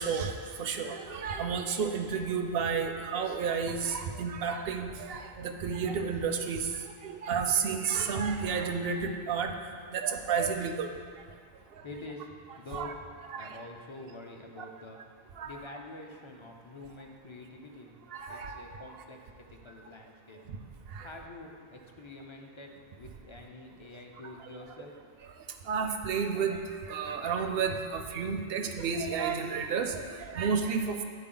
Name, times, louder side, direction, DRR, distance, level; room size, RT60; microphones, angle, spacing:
voice 1, 0.0-6.7 7.0-9.5 9.9-10.9 12.7-12.9 13.3-13.6 14.6-14.7 15.4-15.5 18.1-18.8 20.5-20.6 20.9-21.1 24.4-24.5 25.7-26.6 26.9-31.0, right 6 dB, 65° right, 5 dB, 0.7 m, -31 dB
voice 2, 11.8-15.0 15.4-17.9 18.3-20.4 21.0-22.7 23.0-24.9, left 2 dB, 35° left, 1 dB, 0.5 m, -46 dB
10.0 x 4.3 x 3.8 m, 2.1 s
omnidirectional pair, 1.1 m